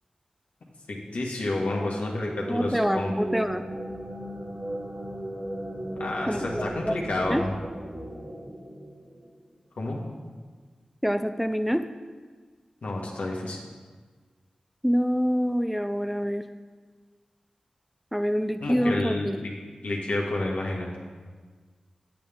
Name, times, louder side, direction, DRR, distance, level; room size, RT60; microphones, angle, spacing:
voice 1, 0.9-3.1 6.0-7.5 9.8-10.0 12.8-13.6 18.6-19.5 19.8-21.0, left 2 dB, 80° left, -2 dB, 1.6 m, -30 dB
sound 1, 2.0-9.4, right 1 dB, 45° right, 1.7 m, -36 dB
voice 2, 2.5-3.6 6.3-6.9 7.3-7.5 11.0-11.8 14.8-16.4 18.1-19.4, equal, 5° right, 8 dB, 0.4 m, -26 dB
9.0 x 8.5 x 3.6 m, 1.5 s
cardioid pair, 45°, 2 cm